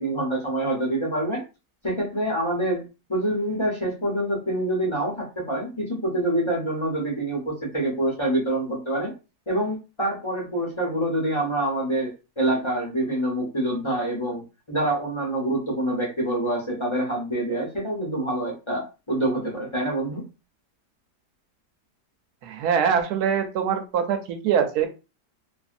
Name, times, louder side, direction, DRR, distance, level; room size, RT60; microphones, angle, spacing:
voice 1, 0.0-1.4 1.8-9.1 9.5-14.4 14.7-20.2, right 1 dB, 25° left, -3 dB, 0.7 m, -26 dB
voice 2, 22.4-24.9, right 7 dB, 75° right, 6 dB, 1.1 m, -23 dB
2.7 x 2.5 x 2.5 m, 0.29 s
omnidirectional pair, 1.8 m